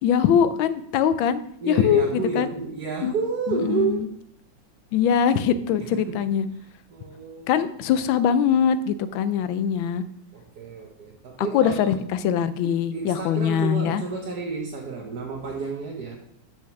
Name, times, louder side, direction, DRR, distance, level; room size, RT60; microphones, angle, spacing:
voice 1, 0.0-2.5 3.0-3.1 3.5-4.1 4.9-6.5 7.5-10.0 11.4-14.0, left 8 dB, 85° left, 13 dB, 1.4 m, -22 dB
voice 2, 1.6-4.1 5.8-6.2 6.9-7.6 10.3-11.9 12.9-16.2, right 4 dB, 55° right, -2 dB, 1.5 m, -30 dB
6.3 x 5.6 x 5.9 m, 0.69 s
omnidirectional pair, 2.1 m